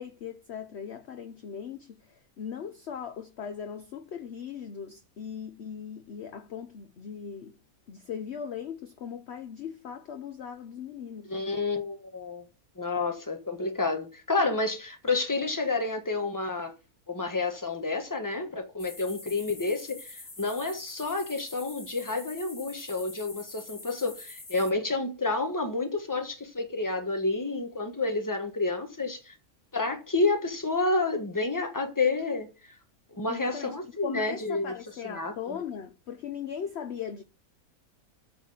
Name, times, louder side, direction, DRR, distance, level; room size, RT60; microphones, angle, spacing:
voice 1, 0.0-2.0 2.4-7.6 7.9-11.3 33.3-33.8 34.0-37.2, left 7 dB, 55° left, 0.9 m, -39 dB
voice 2, 11.3-12.4 12.8-16.7 17.1-29.3 29.7-32.5 33.1-34.7 35.0-35.6, left 3 dB, 15° left, 1.4 m, -29 dB
sound 1, 18.8-24.7, left 2 dB, 40° left, 2.3 m, -45 dB
8.4 x 4.2 x 7.1 m
omnidirectional pair, 1.5 m